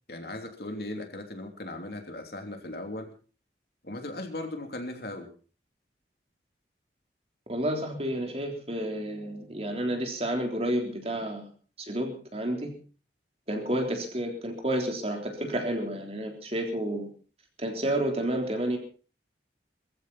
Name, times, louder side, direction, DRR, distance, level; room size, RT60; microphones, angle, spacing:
voice 1, 0.1-3.1 3.8-5.3, left 1 dB, 60° left, 4 dB, 3.1 m, -37 dB
voice 2, 7.5-11.5 11.8-12.7 13.5-17.1 17.6-18.8, right 1 dB, 35° right, 3 dB, 3.6 m, -30 dB
22.0 x 15.0 x 4.2 m, 0.38 s
head